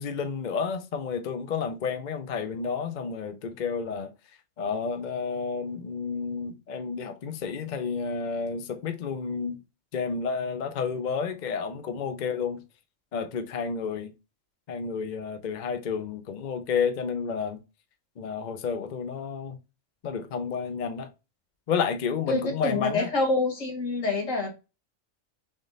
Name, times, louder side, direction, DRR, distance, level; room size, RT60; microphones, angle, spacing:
voice 1, 0.0-4.1 4.6-9.6 9.9-12.6 13.1-14.1 14.7-17.6 18.2-19.6 20.0-21.1 21.7-23.1, left 5 dB, 50° left, 0.6 m, -31 dB
voice 2, 22.3-24.5, left 3 dB, 75° left, 2.1 m, -26 dB
3.6 x 3.6 x 3.9 m
omnidirectional pair, 1.3 m